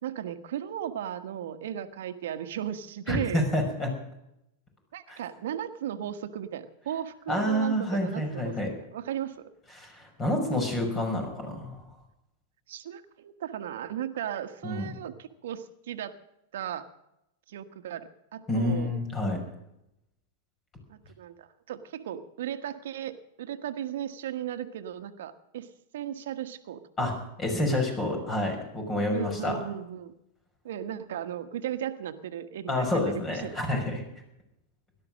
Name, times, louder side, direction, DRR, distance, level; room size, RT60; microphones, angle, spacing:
voice 1, 0.0-3.4 4.9-9.5 10.5-10.6 12.7-16.2 16.5-16.9 17.5-18.9 20.9-26.8 29.1-30.1 30.6-33.7, right 10 dB, 70° right, 8 dB, 1.4 m, -36 dB
voice 2, 3.1-4.0 5.1-5.2 7.3-8.7 9.8-11.8 14.6-14.9 18.5-19.4 27.0-29.6 32.7-34.0, left 1 dB, 25° left, 4 dB, 5.7 m, -28 dB
17.0 x 12.0 x 6.3 m, 0.84 s
hypercardioid pair, 105°, 0 cm